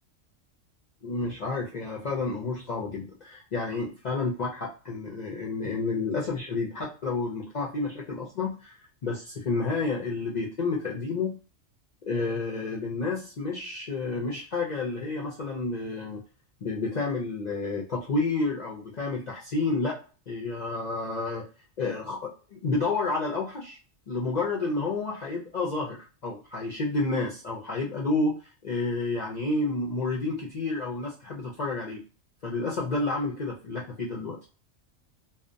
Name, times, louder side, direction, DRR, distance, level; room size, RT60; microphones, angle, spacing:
voice 1, 1.0-8.8 9.0-11.4 12.0-16.2 16.6-20.0 20.3-21.4 21.8-23.8 24.1-32.0 32.4-34.4, left 3 dB, 60° left, -3 dB, 0.4 m, -30 dB
2.7 x 2.1 x 2.5 m, 0.35 s
omnidirectional pair, 1.3 m